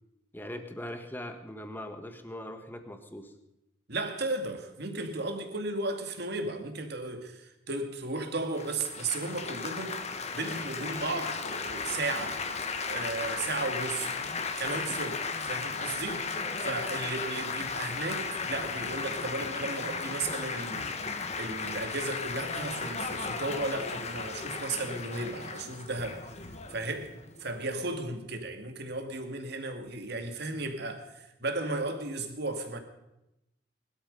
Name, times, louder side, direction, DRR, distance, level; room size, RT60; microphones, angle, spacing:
voice 1, 0.3-3.3, left 1 dB, 10° left, 1.6 m, -41 dB
voice 2, 3.9-12.4 12.9-14.1 14.6-16.2 16.6-20.8 21.2-26.3 26.7-32.8, right 2 dB, 55° right, 2.2 m, -35 dB
Laughter / Applause / Chatter, 8.6-27.7, left 4 dB, 35° left, 1.2 m, -35 dB
21.0 x 12.5 x 5.4 m
head